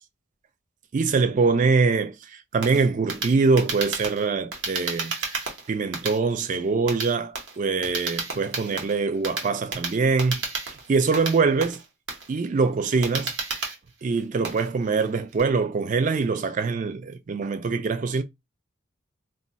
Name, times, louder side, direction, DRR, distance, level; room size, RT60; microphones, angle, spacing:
voice 1, 0.9-5.4 5.7-10.4 10.9-11.8 12.3-13.3 14.0-18.2, right 4 dB, 40° right, 0.3 m, -23 dB
sound 1, 2.6-15.4, right 4 dB, 65° right, 0.9 m, -32 dB
2.2 x 2.2 x 3.9 m
head